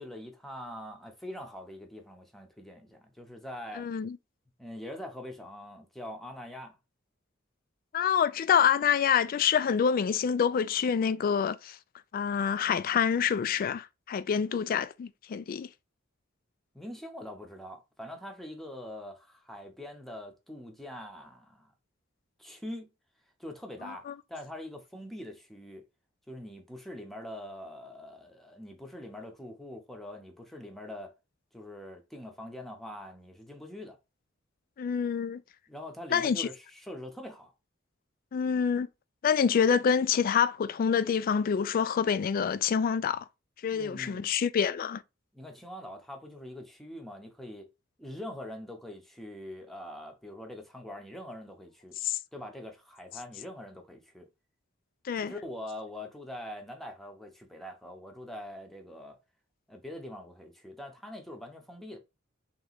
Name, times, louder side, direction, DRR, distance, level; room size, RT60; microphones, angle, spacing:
voice 1, 0.0-3.9 4.6-6.7 16.7-21.7 22.4-22.9 23.4-25.8 26.3-31.1 31.5-34.0 35.7-37.5 43.7-44.3 45.3-47.7 48.0-52.0 52.3-54.3 55.2-59.2 59.7-62.0, left 1 dB, ahead, 0.7 m, -43 dB
voice 2, 3.8-4.2 7.9-11.8 12.1-15.7 23.8-24.1 34.8-35.4 36.1-36.5 38.3-38.9 39.2-43.2 43.6-45.0 52.0-52.2 55.0-55.3, left 7 dB, 45° left, 0.3 m, -27 dB
3.3 x 3.0 x 4.0 m
head